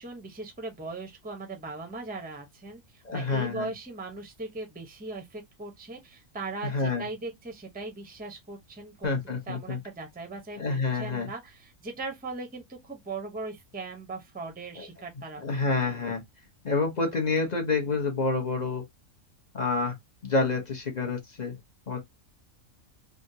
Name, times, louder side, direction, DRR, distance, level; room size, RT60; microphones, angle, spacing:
voice 1, 0.0-9.2 9.5-16.0, right 3 dB, 10° right, 0.5 m, -39 dB
voice 2, 3.0-3.7 6.6-7.1 9.0-9.8 10.6-11.3 14.8-14.9 15.4-16.2 16.6-18.8 19.5-20.0 20.2-21.6 21.9-22.0, left 3 dB, 40° left, 0.7 m, -28 dB
3.5 x 2.1 x 2.6 m
omnidirectional pair, 1.4 m